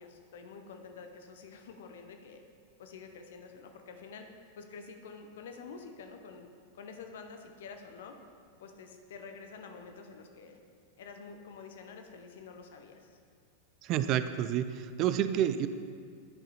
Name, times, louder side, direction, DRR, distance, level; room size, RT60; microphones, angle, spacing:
voice 1, 0.0-2.4 2.8-4.3 4.6-6.5 6.7-8.2 8.6-10.6 11.0-13.2, left 5 dB, 60° left, 5 dB, 0.8 m, -48 dB
voice 2, 13.8-15.7, right 10 dB, 40° right, 12 dB, 0.3 m, -29 dB
10.5 x 5.4 x 4.1 m, 2.2 s
figure-of-eight pair, 90°, 0 cm